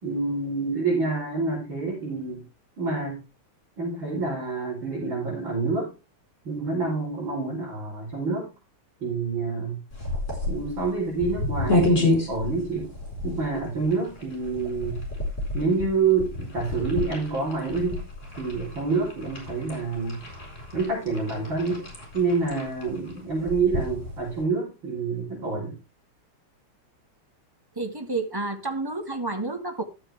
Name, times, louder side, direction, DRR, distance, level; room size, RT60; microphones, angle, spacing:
voice 1, 0.0-2.4 2.8-3.2 3.8-5.9 6.4-8.5 9.0-9.8 10.4-12.9 13.2-15.0 15.5-18.0 18.4-20.2 20.7-21.9 22.1-25.8, right 4 dB, 60° right, 4.9 m, -27 dB
sound 1, 9.9-24.4, left 2 dB, 35° left, 4.8 m, -30 dB
voice 2, 27.7-29.8, right 3 dB, 10° right, 1.3 m, -30 dB
12.5 x 7.6 x 3.3 m
omnidirectional pair, 2.4 m